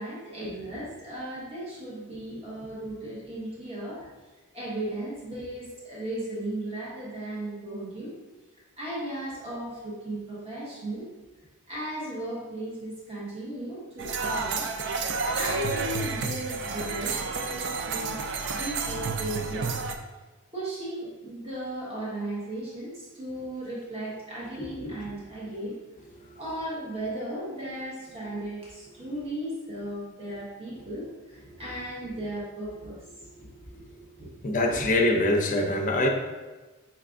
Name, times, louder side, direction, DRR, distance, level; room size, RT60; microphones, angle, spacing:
voice 1, 0.0-4.1 4.5-8.1 8.8-11.1 11.7-14.7 15.3-18.1 18.5-19.7 20.5-25.8 26.4-33.0 34.2-34.3 34.7-34.9, right 1 dB, 25° right, -8 dB, 1.3 m, -36 dB
sound 1, 14.0-20.0, right 4 dB, 50° right, 0.4 m, -30 dB
voice 2, 34.4-36.1, left 1 dB, 35° left, 1 dB, 0.5 m, -23 dB
5.8 x 3.2 x 2.5 m, 1.2 s
head